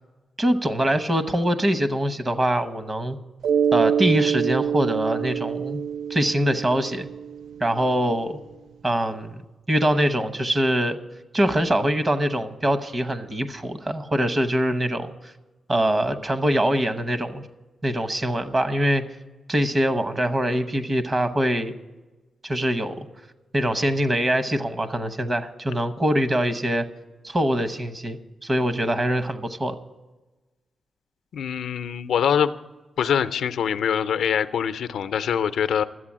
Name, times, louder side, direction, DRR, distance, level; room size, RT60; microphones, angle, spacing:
voice 1, 0.4-3.2 3.7-5.8 6.1-7.1 7.6-8.4 8.8-9.4 9.7-11.0 11.3-15.3 15.7-17.5 17.8-19.0 19.5-21.7 22.4-23.1 23.5-26.9 27.2-29.8, right 1 dB, 25° right, 10 dB, 0.9 m, -23 dB
Mallet percussion, 3.4-7.9, right 8 dB, 85° right, 0.3 m, -25 dB
voice 2, 31.3-32.5 33.0-35.8, left 8 dB, 90° left, 12 dB, 0.5 m, -24 dB
12.5 x 8.4 x 7.3 m, 1.2 s
wide cardioid pair, 135°, 0 cm